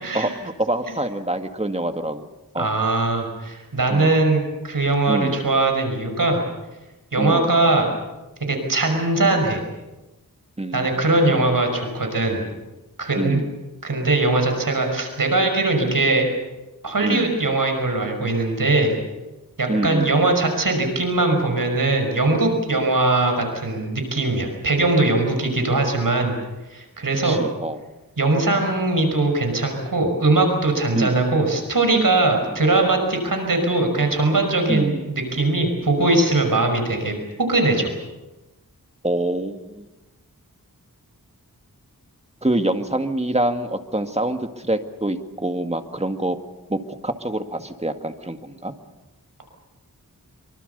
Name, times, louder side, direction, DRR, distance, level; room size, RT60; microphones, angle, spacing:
voice 1, 0.1-2.3 2.5-2.7 3.9-4.1 5.1-5.5 7.2-7.5 10.6-11.5 13.2-13.6 17.0-17.4 19.7-20.1 27.2-27.8 30.9-31.2 34.7-35.1 39.0-39.9 42.4-46.4 46.7-48.7, right 1 dB, 20° right, 7 dB, 1.9 m, -26 dB
voice 2, 2.6-6.4 7.1-7.9 8.5-9.6 10.7-12.4 13.0-13.4 13.8-16.3 16.8-19.0 19.6-26.4 26.7-27.4 28.2-37.9, right 2 dB, 70° right, 4 dB, 5.6 m, -20 dB
25.0 x 24.0 x 6.8 m, 1.0 s
wide cardioid pair, 65°, 34 cm